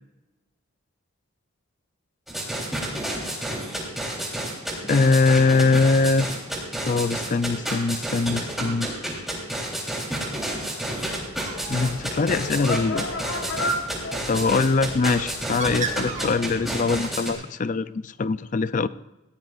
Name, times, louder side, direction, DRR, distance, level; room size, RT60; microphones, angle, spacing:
sound 1, 2.3-17.3, right 1 dB, ahead, 3.5 m, -30 dB
voice 1, 4.8-6.3 6.9-8.9 11.7-13.0 14.3-18.9, left 4 dB, 35° left, 15 dB, 0.4 m, -22 dB
Bird, 10.9-17.0, right 3 dB, 35° right, 1.8 m, -38 dB
sound 2, 11.1-16.8, left 1 dB, 65° left, 1.8 m, -34 dB
20.5 x 16.5 x 2.5 m, 1.0 s
head